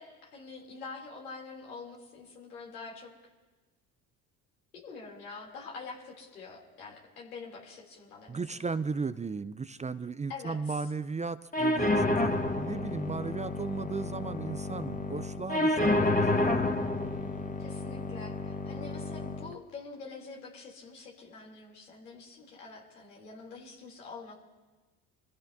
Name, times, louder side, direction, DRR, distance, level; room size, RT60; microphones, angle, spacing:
voice 1, 0.0-3.1 4.7-8.7 10.3-10.8 17.6-24.3, left 4 dB, 90° left, -2 dB, 3.3 m, -46 dB
voice 2, 8.3-16.6, right 4 dB, 15° right, 13 dB, 0.5 m, -36 dB
sound 1, 11.5-19.5, left 2 dB, 20° left, 1.5 m, -30 dB
26.5 x 15.5 x 2.7 m, 1.2 s
hypercardioid pair, 60°, 43 cm